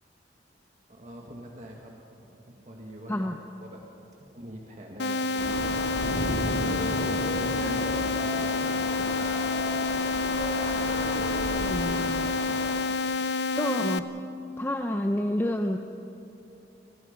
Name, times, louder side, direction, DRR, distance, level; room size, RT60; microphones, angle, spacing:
voice 1, 0.9-3.3 3.6-5.9 6.5-9.5, right 1 dB, 40° right, 0 dB, 1.8 m, -45 dB
sound 1, 5.0-14.0, left 4 dB, 75° left, 0.8 m, -28 dB
Thunder / Rain, 5.4-12.7, equal, 45° left, 4.3 m, -34 dB
Wind instrument woodwind instrument, 6.3-8.8 9.1-12.4, left 1 dB, 15° right, 7.3 m, -41 dB
voice 2, 11.5-12.3 13.6-14.1 14.6-15.8, left 1 dB, 15° left, 4 dB, 0.7 m, -29 dB
29.5 x 20.5 x 5.2 m, 2.9 s
head